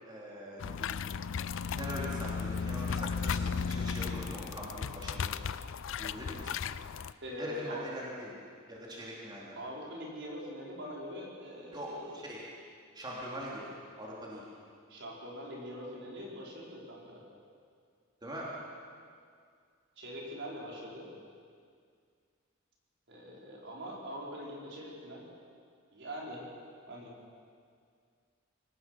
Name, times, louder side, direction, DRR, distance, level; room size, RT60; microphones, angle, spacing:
voice 1, 0.1-1.0 1.7-5.4 6.0-6.6 7.4-8.4 8.7-9.6 11.7-12.4 12.9-13.7 14.0-14.4 18.2-18.5, equal, 20° right, -5 dB, 3.4 m, -42 dB
sound 1, 0.6-7.1, left 6 dB, 65° left, 0.5 m, -35 dB
voice 2, 7.2-7.9 9.5-12.2 14.9-17.2 20.0-21.1 23.1-25.3 25.9-26.5 26.9-27.1, equal, 60° right, -3 dB, 5.2 m, -43 dB
24.0 x 19.0 x 6.2 m, 2.2 s
head